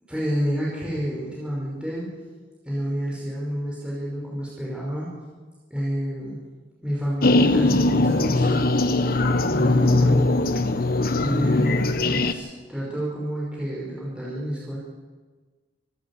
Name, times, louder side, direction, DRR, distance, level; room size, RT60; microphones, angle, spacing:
voice 1, 0.1-2.1 2.6-5.1 5.7-6.4 6.8-8.8 9.5-10.3 11.2-14.8, equal, 5° right, -6 dB, 5.0 m, -29 dB
sound 1, 7.2-12.3, left 2 dB, 55° left, 1.2 m, -20 dB
25.5 x 12.5 x 8.4 m, 1.4 s
head